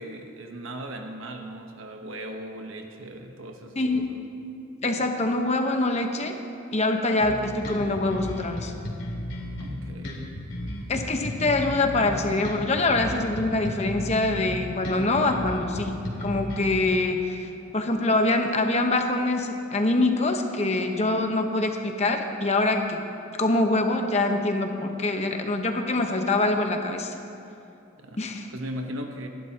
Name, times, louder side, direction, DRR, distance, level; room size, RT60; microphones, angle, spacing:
voice 1, 0.0-4.2 9.6-10.3 28.0-28.2 28.5-29.3, right 1 dB, 85° right, 4 dB, 1.1 m, -38 dB
voice 2, 3.8-4.1 4.8-6.4 6.7-8.7 10.9-17.5 17.7-23.0 23.4-27.1 28.2-28.5, left 2 dB, 35° left, 4 dB, 1.0 m, -24 dB
sound 1, 7.2-16.8, left 1 dB, 60° left, 2.7 m, -34 dB
29.0 x 11.5 x 2.9 m, 2.7 s
head